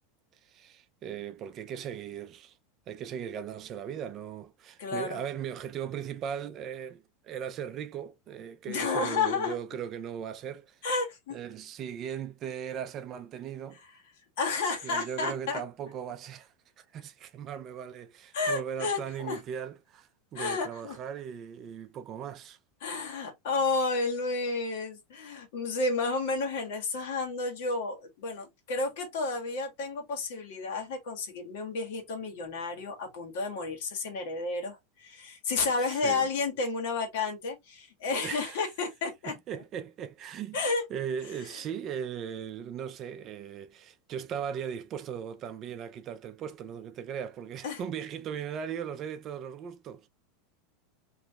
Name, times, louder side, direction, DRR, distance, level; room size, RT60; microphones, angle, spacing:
voice 1, 0.4-2.6 2.9-10.8 11.3-13.8 14.8-22.6 35.8-36.3 38.1-38.6 39.3-40.6 40.9-50.1, right 8 dB, 30° right, 0.4 m, -38 dB
voice 2, 4.8-5.2 8.7-9.6 10.8-11.4 13.8-13.9 14.4-15.6 18.3-19.4 20.3-21.0 22.8-39.6 40.5-40.8 41.4-41.6 47.6-47.8, left 3 dB, 60° left, 1.8 m, -31 dB
3.5 x 3.1 x 2.9 m
supercardioid pair, 165°, 0 cm